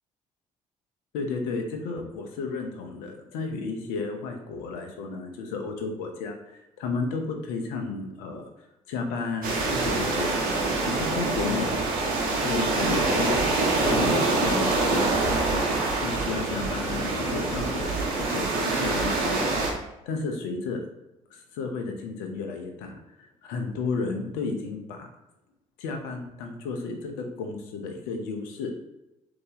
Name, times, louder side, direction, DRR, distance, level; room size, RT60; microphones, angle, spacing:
voice 1, 1.1-8.4 8.9-10.4 10.8-11.7 12.4-15.7 16.0-20.8 21.3-25.1 25.8-28.7, left 4 dB, 80° left, 4 dB, 0.7 m, -33 dB
sound 1, 9.4-19.7, right 3 dB, 70° right, 0.9 m, -25 dB
4.0 x 2.9 x 3.8 m, 0.92 s
hypercardioid pair, 50°, 16 cm